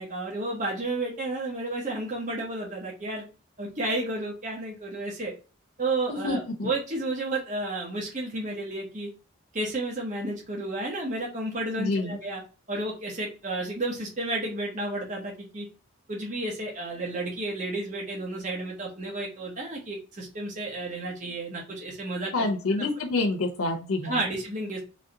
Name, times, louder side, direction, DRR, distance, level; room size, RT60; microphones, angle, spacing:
voice 1, 0.0-3.2 3.6-5.3 5.8-9.1 9.5-12.4 12.7-15.7 16.1-22.5 22.8-22.9 24.0-24.8, right 2 dB, 35° right, -1 dB, 0.8 m, -32 dB
voice 2, 6.1-6.7 11.8-12.2 22.3-24.2, left 2 dB, 85° left, 3 dB, 0.6 m, -27 dB
3.1 x 2.7 x 3.8 m, 0.34 s
head